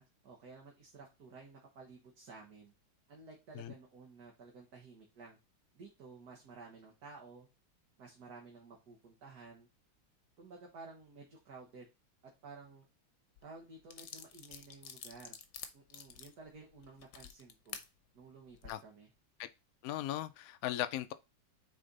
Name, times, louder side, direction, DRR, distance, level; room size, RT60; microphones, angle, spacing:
voice 1, 0.0-2.7 3.1-5.4 5.8-7.5 8.0-9.7 10.4-11.9 12.4-12.9 13.4-15.4 15.7-17.8 18.1-19.1, right 4 dB, 55° right, 1.8 m, -53 dB
sound 1, 13.4-13.5 13.9-17.9 18.4-18.7, left 8 dB, 65° left, 1.4 m, -49 dB
voice 2, 19.8-21.1, left 13 dB, 85° left, 0.7 m, -37 dB
6.4 x 4.3 x 3.9 m
omnidirectional pair, 2.1 m